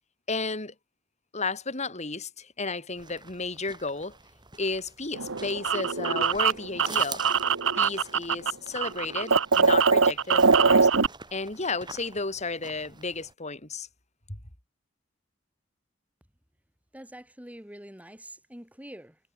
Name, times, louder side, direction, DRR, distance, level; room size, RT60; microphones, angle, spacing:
voice 1, 0.3-0.7 1.3-4.2 4.6-7.2 7.7-10.9 11.3-13.9 14.3-14.4, left 3 dB, 35° left, 4.2 m, -33 dB
sound 1, 2.9-13.3, right 4 dB, 25° right, 7.9 m, -47 dB
sound 2, 5.1-8.5 8.8-11.1, right 5 dB, 80° right, 1.3 m, -22 dB
voice 2, 16.9-19.2, right 1 dB, 5° right, 4.6 m, -45 dB
head